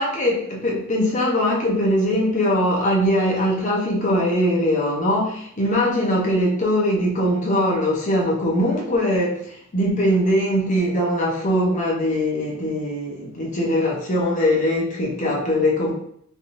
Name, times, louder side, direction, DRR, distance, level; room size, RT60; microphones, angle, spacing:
voice 1, 0.0-15.9, equal, 35° left, -3 dB, 0.9 m, -21 dB
3.4 x 2.9 x 2.6 m, 0.67 s
head